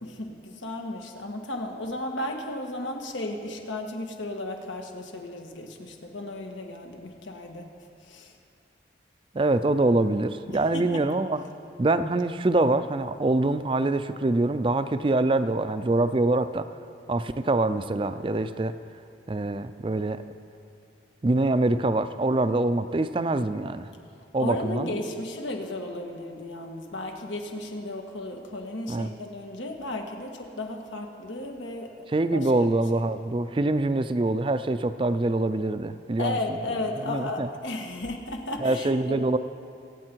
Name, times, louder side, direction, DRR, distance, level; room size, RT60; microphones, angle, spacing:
voice 1, 0.0-7.7 8.1-8.3 10.5-10.8 24.4-31.9 32.3-32.7 36.2-39.2, left 2 dB, 90° left, 3 dB, 1.6 m, -34 dB
voice 2, 9.3-11.4 11.8-16.7 17.1-18.7 19.3-20.2 21.2-23.9 24.3-24.9 28.9-29.1 32.1-36.6 37.0-37.5 38.6-39.4, right 2 dB, 25° right, 11 dB, 0.4 m, -24 dB
24.5 x 8.4 x 4.6 m, 2.5 s
head